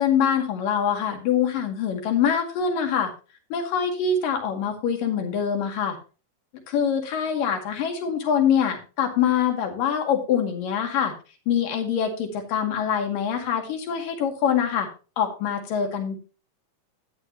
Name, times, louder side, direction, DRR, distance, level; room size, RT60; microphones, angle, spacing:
voice 1, 0.0-3.1 3.5-6.0 6.7-11.1 11.5-14.9 15.2-16.2, left 7 dB, 85° left, 3 dB, 3.8 m, -24 dB
11.5 x 10.5 x 3.0 m, 0.33 s
omnidirectional pair, 3.8 m